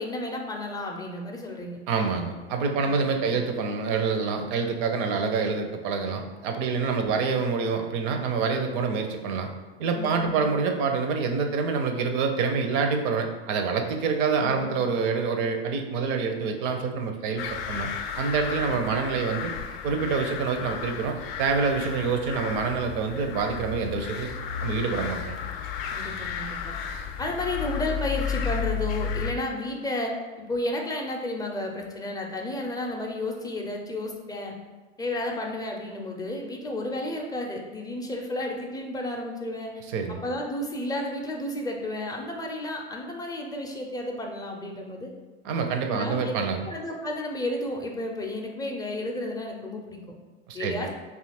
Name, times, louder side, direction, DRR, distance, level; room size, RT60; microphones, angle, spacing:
voice 1, 0.0-1.8 2.8-3.3 7.0-7.2 9.9-10.5 14.4-14.7 18.6-18.8 25.9-26.8 27.2-34.6 35.0-39.7 40.2-45.1 45.9-46.3 46.6-50.0 50.5-50.9, left 1 dB, 10° left, 1 dB, 0.5 m, -32 dB
voice 2, 1.9-9.5 9.8-17.9 18.2-19.5 19.8-24.3 24.6-25.4 39.9-40.2 45.4-46.6 50.5-50.8, right 5 dB, 50° right, 5 dB, 0.6 m, -26 dB
sound 1, 17.4-29.3, left 6 dB, 65° left, 0.5 m, -33 dB
2.8 x 2.4 x 4.2 m, 1.3 s
hypercardioid pair, 80°, 32 cm